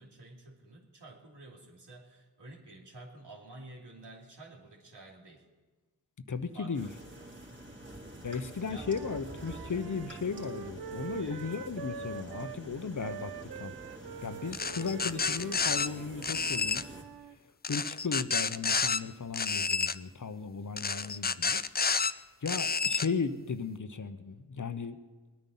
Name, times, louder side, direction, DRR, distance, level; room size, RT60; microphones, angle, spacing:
voice 1, 0.0-5.5 6.5-7.3 8.7-8.9 11.2-11.5, right 2 dB, 80° right, -1 dB, 3.0 m, -51 dB
voice 2, 6.3-6.9 8.2-13.7 14.2-16.8 17.7-21.7 22.0-25.0, left 5 dB, 50° left, 11 dB, 0.9 m, -36 dB
sound 1, 6.7-17.0, right 1 dB, 25° right, 3.1 m, -47 dB
Wind instrument woodwind instrument, 8.7-12.6 13.0-17.4, right 7 dB, 65° right, 0.6 m, -45 dB
sound 2, 14.5-15.9 16.2-16.8 17.6-19.0 19.3-20.0 20.8-22.1 22.5-23.1, left 5 dB, 25° left, 0.5 m, -30 dB
20.0 x 9.3 x 5.6 m, 1.3 s
cardioid pair, 45°, 41 cm